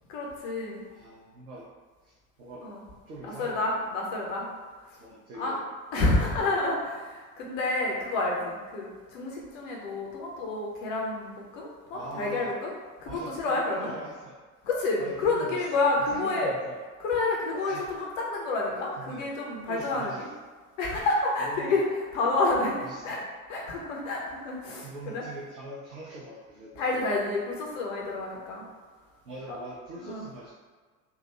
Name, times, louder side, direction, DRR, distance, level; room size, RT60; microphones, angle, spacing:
voice 1, 0.1-0.9 2.6-2.8 3.2-4.5 4.9-5.0 5.4-5.5 5.9-12.7 13.0-13.9 14.6-16.5 17.0-20.3 20.8-23.2 23.5-25.2 26.8-28.6 29.5-29.6 30.0-30.2, left 2 dB, 65° left, -2 dB, 0.9 m, -29 dB
voice 2, 0.9-1.7 2.0-2.7 3.1-3.6 5.0-5.6 6.0-6.6 11.9-12.5 13.1-14.4 15.0-15.6 16.1-16.8 17.5-17.8 19.0-19.3 19.7-20.3 21.4-21.8 22.8-23.3 24.8-27.0 28.3-28.4 29.2-30.5, right 1 dB, 85° right, -5 dB, 0.5 m, -43 dB
3.4 x 2.3 x 3.1 m, 1.4 s
figure-of-eight pair, 55°, 42 cm